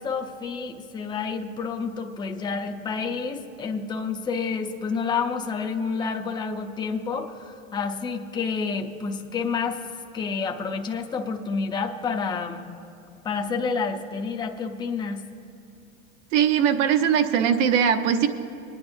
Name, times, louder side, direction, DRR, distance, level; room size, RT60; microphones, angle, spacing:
voice 1, 0.0-9.8 10.1-12.7 13.2-15.2, left 5 dB, 10° left, 4 dB, 0.5 m, -29 dB
voice 2, 16.3-18.3, right 8 dB, 65° right, 7 dB, 1.0 m, -20 dB
23.5 x 9.8 x 2.6 m, 2.4 s
supercardioid pair, 120°, 41 cm